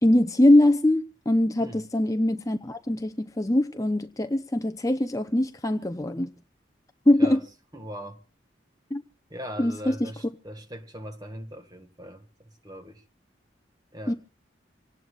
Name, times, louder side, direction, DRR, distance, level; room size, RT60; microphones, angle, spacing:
voice 1, 0.0-6.3 7.1-7.4 8.9-9.0 9.6-10.1 14.1-14.2, left 1 dB, 15° left, 0.7 m, -22 dB
voice 2, 7.7-8.2 9.3-13.0 13.9-14.1, equal, 20° right, 1.7 m, -40 dB
26.5 x 18.5 x 2.4 m
head